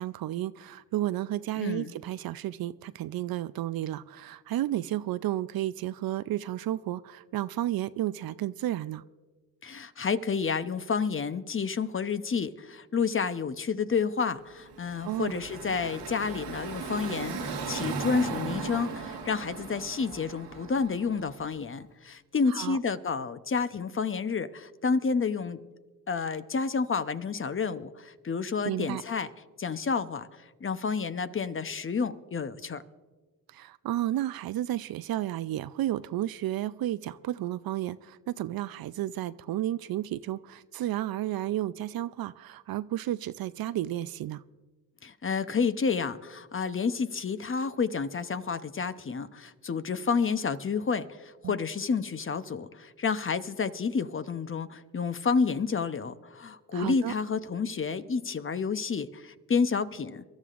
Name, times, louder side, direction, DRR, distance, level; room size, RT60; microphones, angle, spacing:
voice 1, 0.0-9.0 15.0-15.4 22.5-22.8 28.6-29.0 33.5-44.4 51.4-51.6 56.7-57.1, right 13 dB, 65° right, 16 dB, 0.5 m, -32 dB
voice 2, 1.6-1.9 9.6-25.6 26.1-29.3 29.6-32.8 45.0-60.2, left 5 dB, 35° left, 11 dB, 0.7 m, -30 dB
Car passing by / Traffic noise roadway noise, 14.6-21.5, right 5 dB, 90° right, 1.8 m, -37 dB
24.0 x 12.5 x 2.5 m, 1.3 s
cardioid pair, 60°, 39 cm